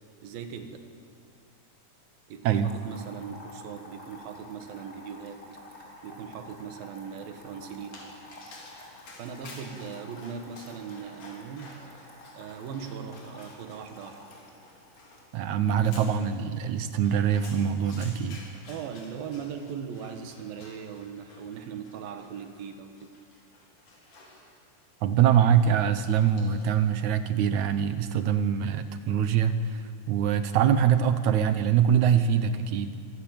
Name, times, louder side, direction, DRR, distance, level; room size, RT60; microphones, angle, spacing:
voice 1, 0.2-0.9 2.3-8.1 9.2-12.0 12.3-14.2 18.7-23.1, right 7 dB, 90° right, 6 dB, 3.2 m, -39 dB
sound 1, 2.5-15.2, left 1 dB, 20° left, 4.9 m, -50 dB
Dog, 7.8-26.9, left 2 dB, 60° left, 5.4 m, -52 dB
voice 2, 15.3-18.4 25.0-29.8 30.1-33.0, right 8 dB, 70° right, 11 dB, 1.9 m, -24 dB
25.5 x 17.0 x 8.9 m, 2.1 s
omnidirectional pair, 4.1 m